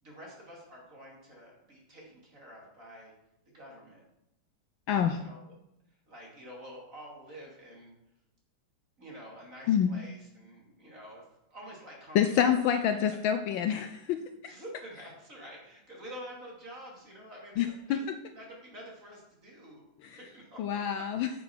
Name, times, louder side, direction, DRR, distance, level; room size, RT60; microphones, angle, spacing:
voice 1, 0.0-3.1 3.5-4.0 5.1-5.4 6.1-7.9 9.0-11.2 11.5-12.4 13.3-13.4 14.5-18.0 18.3-19.8 20.2-21.0, equal, 35° right, -2 dB, 3.0 m, -48 dB
voice 2, 4.9-5.2 9.7-9.9 12.1-14.6 17.6-18.1 20.0-20.2 20.6-21.3, left 9 dB, 75° left, 8 dB, 1.2 m, -27 dB
9.4 x 6.9 x 5.9 m, 0.86 s
omnidirectional pair, 2.4 m